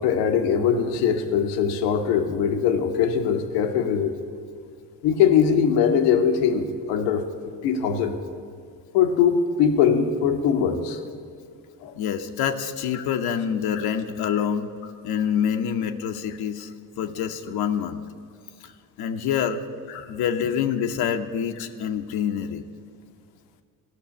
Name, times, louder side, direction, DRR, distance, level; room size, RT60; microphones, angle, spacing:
voice 1, 0.0-4.1 5.0-7.2 7.6-8.2 8.9-11.0 11.8-11.9 19.9-20.0, left 7 dB, 85° left, 6 dB, 1.1 m, -21 dB
voice 2, 12.0-14.7 15.0-16.7 17.0-18.0 18.6-18.7 19.0-19.6 20.1-22.6, left 8 dB, 60° left, 5 dB, 0.8 m, -26 dB
13.5 x 6.2 x 9.6 m, 2.2 s
supercardioid pair, 70°, 42 cm